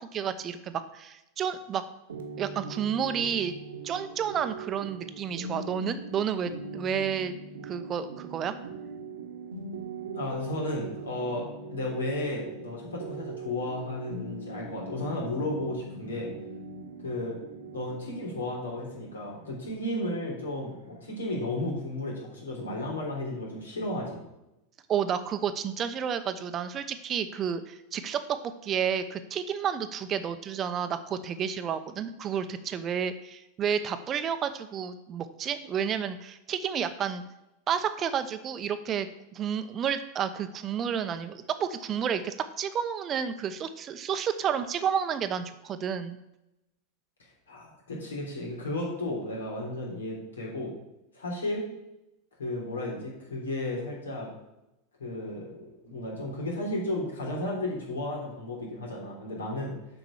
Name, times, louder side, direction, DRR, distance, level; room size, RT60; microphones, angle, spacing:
voice 1, 0.1-1.8 2.4-3.5 3.8-8.5 24.9-37.2 37.7-39.1 39.3-46.2, right 8 dB, 30° right, 11 dB, 0.8 m, -31 dB
sound 1, 2.1-21.7, right 3 dB, 70° right, 1.3 m, -41 dB
voice 2, 10.1-11.5 11.7-16.3 17.0-24.2 47.5-50.7 51.1-51.6 52.4-54.3 55.0-59.7, left 1 dB, 70° left, -2 dB, 3.4 m, -34 dB
7.6 x 6.0 x 7.2 m, 0.91 s
figure-of-eight pair, 85°, 0 cm